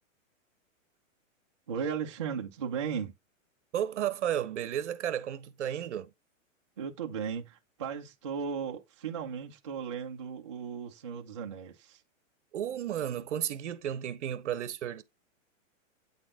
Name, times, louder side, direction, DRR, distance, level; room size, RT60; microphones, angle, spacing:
voice 1, 1.7-3.1 6.8-12.0, right 7 dB, 25° right, 0.4 m, -36 dB
voice 2, 3.7-6.1 12.5-15.0, right 10 dB, 60° right, 1.0 m, -33 dB
8.7 x 4.0 x 3.6 m
hypercardioid pair, 175°, 40 cm